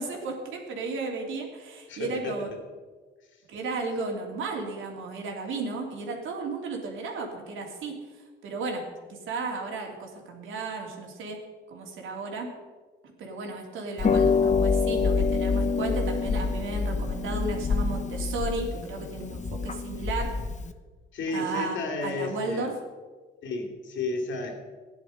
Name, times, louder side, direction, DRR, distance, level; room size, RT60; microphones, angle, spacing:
voice 1, 0.0-2.5 3.5-8.0 8.4-8.8 9.1-11.4 11.7-12.5 13.0-20.3 21.3-22.7, right 3 dB, 80° right, 1 dB, 3.2 m, -34 dB
voice 2, 1.9-2.4 21.1-22.7 23.4-24.6, left 3 dB, 70° left, 3 dB, 2.9 m, -32 dB
Harp, 14.0-20.7, left 4 dB, 35° left, 1.0 m, -26 dB
14.5 x 10.5 x 5.2 m, 1.4 s
cardioid pair, 90°, 20 cm